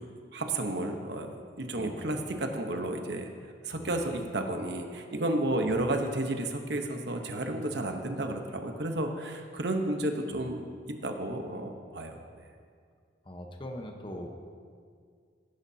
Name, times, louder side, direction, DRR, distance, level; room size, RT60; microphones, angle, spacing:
voice 1, 0.3-3.3 3.6-12.2, right 1 dB, 60° right, 4 dB, 1.0 m, -32 dB
voice 2, 1.8-2.3 3.8-3.9 5.7-5.8 10.3-10.5 13.2-14.4, left 1 dB, 25° left, 3 dB, 1.0 m, -42 dB
16.5 x 10.5 x 2.8 m, 2.1 s
head